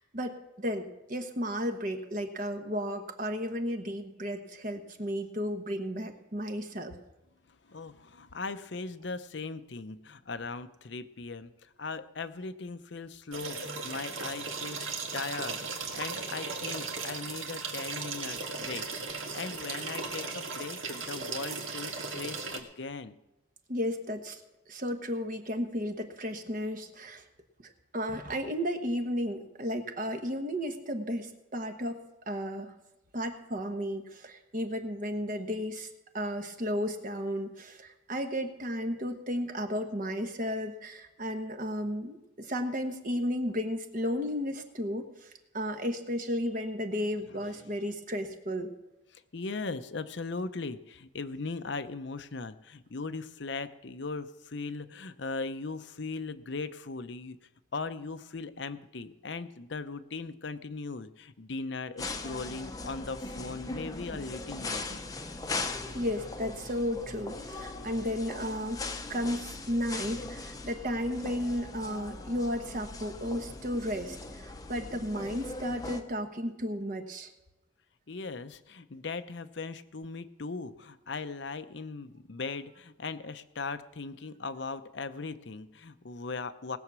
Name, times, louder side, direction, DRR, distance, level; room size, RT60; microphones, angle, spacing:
voice 1, 0.0-6.9 23.7-24.4 24.7-27.2 27.6-32.7 33.1-35.9 36.1-48.7 65.9-68.8 69.1-77.3, equal, 40° right, 5 dB, 1.1 m, -33 dB
voice 2, 7.7-23.2 47.5-47.7 49.1-57.4 57.7-65.0 78.1-86.8, left 4 dB, 60° left, 11 dB, 0.7 m, -39 dB
sound 1, 13.3-22.6, right 4 dB, 80° right, 1.8 m, -37 dB
sound 2, 62.0-76.0, left 3 dB, 20° left, 0.8 m, -40 dB
19.5 x 7.1 x 6.2 m, 1.0 s
head